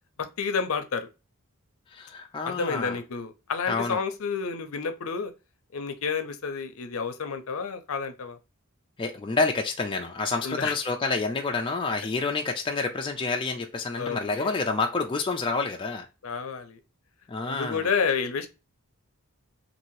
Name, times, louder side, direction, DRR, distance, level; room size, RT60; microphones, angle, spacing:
voice 1, 0.4-1.1 2.4-5.3 5.7-8.4 10.4-10.7 14.0-14.5 16.2-16.8 17.5-18.5, left 5 dB, 70° left, 0.6 m, -30 dB
voice 2, 1.9-3.0 3.7-4.0 9.0-16.1 17.3-17.9, left 3 dB, 25° left, 0.3 m, -28 dB
2.7 x 2.6 x 2.9 m
head